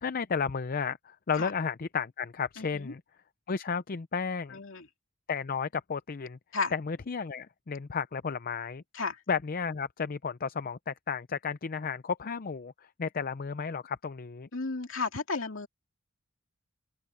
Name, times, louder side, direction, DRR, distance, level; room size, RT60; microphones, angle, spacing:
voice 1, 0.0-3.0 3.5-4.6 5.3-6.4 6.7-8.8 9.3-12.7 13.0-14.5, left 6 dB, 45° left, 0.5 m, -33 dB
voice 2, 2.6-2.9 4.5-4.9 6.5-6.7 8.9-9.2 14.5-15.7, left 4 dB, 70° left, 2.7 m, -33 dB
open air
head